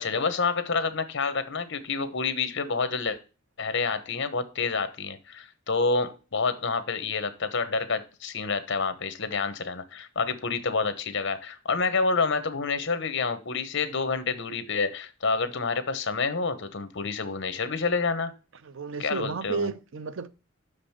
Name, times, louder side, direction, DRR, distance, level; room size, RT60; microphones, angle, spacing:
voice 1, 0.0-3.2 3.6-18.3 19.0-19.7, left 4 dB, 60° left, 1.1 m, -28 dB
voice 2, 18.6-20.3, right 4 dB, 70° right, 0.6 m, -32 dB
6.4 x 5.2 x 5.8 m
head